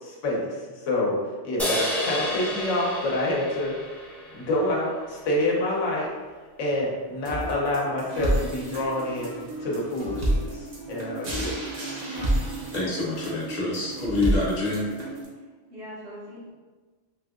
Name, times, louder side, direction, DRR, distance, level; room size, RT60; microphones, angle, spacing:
voice 1, 0.0-3.8 4.3-6.1 6.6-11.5, left 1 dB, 85° left, -3 dB, 1.0 m, -27 dB
sound 1, 1.6-5.1, left 1 dB, ahead, 0.3 m, -31 dB
sound 2, 7.2-15.2, right 1 dB, 45° right, 0.6 m, -30 dB
voice 2, 12.7-14.9, left 2 dB, 40° left, -5 dB, 0.8 m, -27 dB
voice 3, 15.3-16.5, equal, 65° right, -5 dB, 1.0 m, -42 dB
3.5 x 2.6 x 2.3 m, 1.4 s
omnidirectional pair, 1.2 m